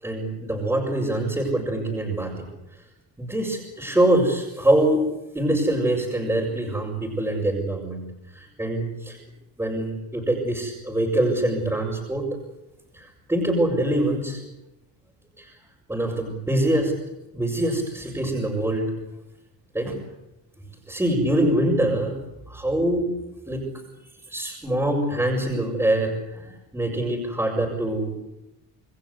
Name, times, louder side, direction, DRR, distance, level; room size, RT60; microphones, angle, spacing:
voice 1, 0.0-2.5 3.2-5.0 5.3-8.0 8.3-9.2 9.6-12.3 12.9-14.5 15.4-15.5 15.9-17.0 17.3-18.9 19.7-19.9 20.9-22.1 22.5-23.1 23.5-23.6 24.3-28.1, right 1 dB, 5° right, -5 dB, 5.6 m, -24 dB
28.0 x 20.5 x 8.2 m, 0.93 s
cardioid pair, 160°, 37 cm